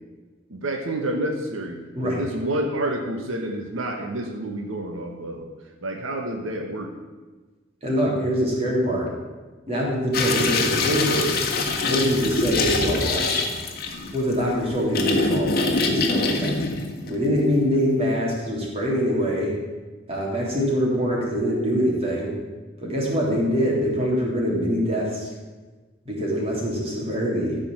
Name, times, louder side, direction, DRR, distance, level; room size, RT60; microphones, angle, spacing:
voice 1, 0.5-5.5 5.8-6.9, right 1 dB, 85° right, 2 dB, 1.3 m, -29 dB
voice 2, 7.8-9.1 9.7-11.4 11.8-13.4 14.1-16.6 17.0-19.6 20.1-22.3 22.8-25.3 26.0-27.6, equal, 30° right, -3 dB, 3.1 m, -24 dB
sound 1, 10.1-17.8, left 3 dB, 50° left, 1.4 m, -24 dB
14.0 x 5.2 x 7.6 m, 1.3 s
head